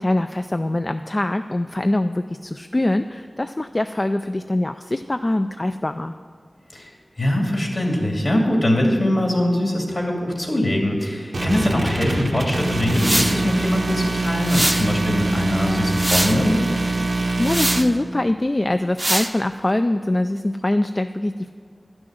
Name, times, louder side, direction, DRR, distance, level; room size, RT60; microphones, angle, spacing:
voice 1, 0.0-6.1 17.4-21.5, left 1 dB, 35° left, 8 dB, 0.3 m, -23 dB
voice 2, 7.2-16.6, left 1 dB, 55° left, 0 dB, 2.4 m, -22 dB
sound 1, 11.3-17.8, right 2 dB, 85° right, 1.1 m, -24 dB
sound 2, 12.9-13.4 14.4-14.9 15.6-16.4 17.4-17.9 19.0-19.3, right 1 dB, 25° right, 0.6 m, -22 dB
11.5 x 6.2 x 7.5 m, 2.1 s
wide cardioid pair, 45°, 0 cm